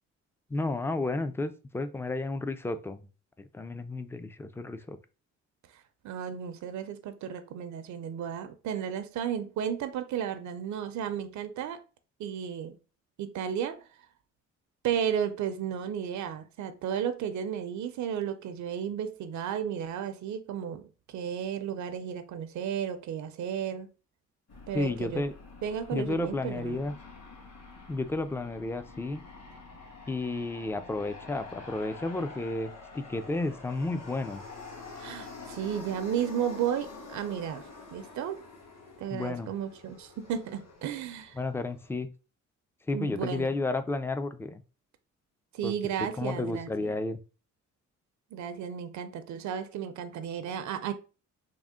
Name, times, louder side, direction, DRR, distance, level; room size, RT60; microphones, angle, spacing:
voice 1, 0.5-3.1 3.5-5.0 24.7-25.3 25.9-26.9 27.9-29.2 30.1-34.4 39.1-39.5 41.4-42.1 42.9-44.6 45.6-45.7 46.0-47.2, left 2 dB, 10° left, 0.3 m, -32 dB
voice 2, 6.0-11.8 12.2-12.8 13.2-13.8 14.8-23.9 24.7-25.2 25.6-26.8 35.0-38.4 39.0-41.4 42.9-43.6 45.5-47.0 48.3-50.9, right 8 dB, 70° right, 0.5 m, -33 dB
Aircraft, 24.5-41.9, left 3 dB, 55° left, 1.8 m, -47 dB
3.6 x 2.1 x 3.5 m
cardioid pair, 90°, 30 cm